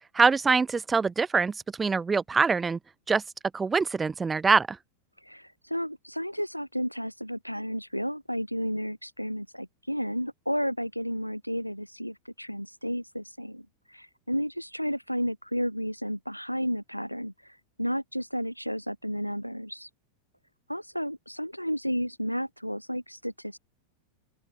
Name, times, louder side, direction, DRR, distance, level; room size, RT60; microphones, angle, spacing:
voice 1, 0.1-2.8 3.1-3.2 3.5-4.8, right 4 dB, 15° right, 3.1 m, -24 dB
voice 2, 5.2-19.9 20.7-23.6, equal, 90° left, 5.1 m, -32 dB
open air
figure-of-eight pair, 90°, 0 cm